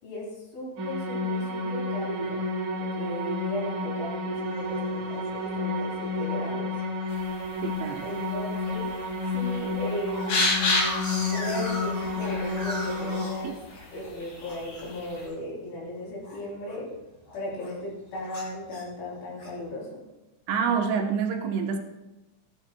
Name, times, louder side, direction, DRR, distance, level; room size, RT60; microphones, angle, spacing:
voice 1, 0.0-2.4 2.7-6.7 8.0-8.9 9.3-10.3 11.3-13.6 13.9-16.9 17.3-20.0, left 1 dB, 75° left, -4 dB, 5.7 m, -36 dB
sound 1, 0.8-13.2, left 2 dB, 50° right, 2.9 m, -30 dB
sound 2, 4.5-4.9 5.4-5.5 5.8-6.1 6.5-7.2 7.7-8.1 8.5-8.6 8.9-9.0 9.3-14.1 14.4-17.0 17.3-17.8 18.3-19.6, left 1 dB, 35° left, 4.0 m, -39 dB
sound 3, 7.1-15.3, left 2 dB, 55° left, 4.3 m, -33 dB
voice 2, 7.6-8.1 13.4-13.5 20.5-21.8, right 6 dB, 75° right, 3 dB, 3.1 m, -27 dB
17.0 x 11.5 x 2.2 m, 1.0 s
omnidirectional pair, 5.4 m